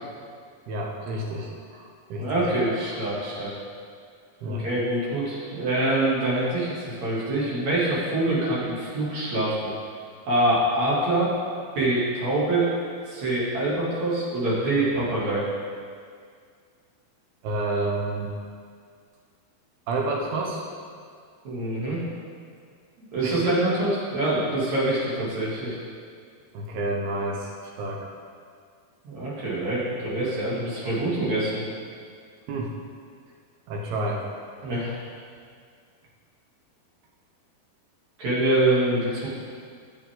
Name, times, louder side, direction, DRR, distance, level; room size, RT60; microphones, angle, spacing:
voice 1, 0.7-2.3 4.4-4.7 17.4-18.3 19.9-20.6 23.2-23.6 26.5-27.5 27.8-28.1 32.5-32.7 33.7-34.2, right 2 dB, 90° right, -1 dB, 3.1 m, -29 dB
voice 2, 2.1-3.5 4.4-9.7 10.3-11.3 11.7-12.7 13.1-15.4 21.4-22.0 23.1-25.8 29.0-31.6 34.6-34.9 38.2-39.3, right 1 dB, 50° right, -8 dB, 3.8 m, -25 dB
14.0 x 7.3 x 3.8 m, 2.1 s
omnidirectional pair, 4.4 m